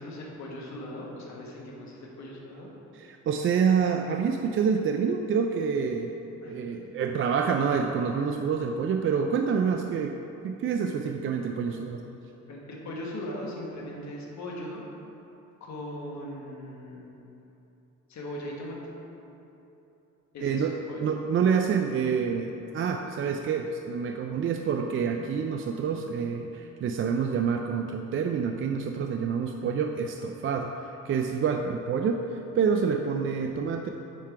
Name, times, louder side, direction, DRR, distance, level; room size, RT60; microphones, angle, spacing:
voice 1, 0.0-2.7 6.4-6.6 12.5-14.8 15.6-17.1 18.1-18.8 20.3-21.0, left 1 dB, 65° left, -3 dB, 1.5 m, -39 dB
voice 2, 2.9-6.1 6.5-10.1 10.4-12.0 20.4-20.7 21.0-33.9, right 6 dB, 45° right, 4 dB, 0.4 m, -27 dB
9.1 x 3.7 x 4.6 m, 3.0 s
cardioid pair, 90°, 30 cm